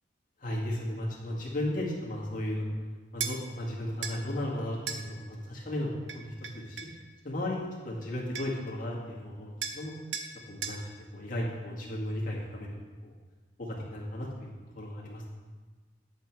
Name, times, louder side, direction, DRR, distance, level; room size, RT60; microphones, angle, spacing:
voice 1, 0.4-2.7 3.1-6.9 7.2-9.9 10.5-13.1 13.6-15.3, left 1 dB, 50° left, -4 dB, 2.0 m, -35 dB
sound 1, 3.2-3.4 4.0-4.2 4.9-5.0 6.1-7.0 8.0-8.1 8.3-8.7 9.6-9.8 10.1-10.3 10.6-10.8, right 7 dB, 85° right, 0.8 m, -36 dB
8.7 x 8.0 x 4.6 m, 1.4 s
head